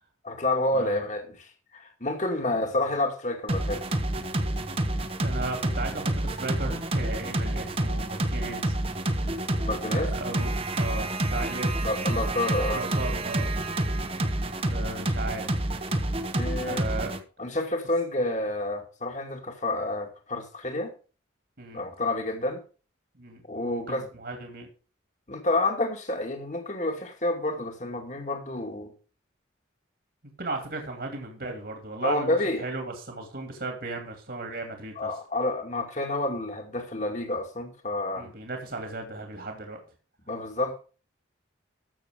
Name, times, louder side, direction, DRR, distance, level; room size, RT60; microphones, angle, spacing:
voice 1, 0.2-3.9 9.6-10.1 11.8-12.8 16.3-16.8 17.4-20.9 21.7-22.6 23.5-24.0 25.3-28.9 32.0-32.6 35.0-38.3 40.3-40.8, left 2 dB, 40° left, 2.3 m, -29 dB
sound 1, 3.5-17.2, right 1 dB, 30° right, 1.1 m, -28 dB
voice 2, 5.2-8.8 9.1-9.3 9.9-11.9 12.7-13.5 14.7-15.5 16.6-17.1 21.6-21.8 23.2-24.7 30.4-35.1 38.1-39.8, right 2 dB, 55° right, 2.5 m, -36 dB
13.5 x 7.1 x 5.1 m
head